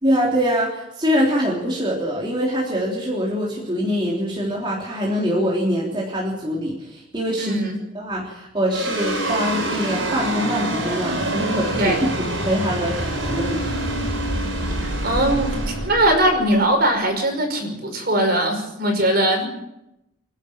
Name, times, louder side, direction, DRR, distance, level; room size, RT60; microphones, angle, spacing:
voice 1, 0.0-7.6 7.9-13.7, equal, 25° right, -4 dB, 3.4 m, -24 dB
voice 2, 7.4-7.8 11.8-12.0 14.8-19.4, right 1 dB, 45° right, 4 dB, 5.4 m, -20 dB
sound 1, 8.7-17.2, right 1 dB, 70° right, 6.4 m, -26 dB
26.0 x 11.5 x 8.9 m, 0.86 s
head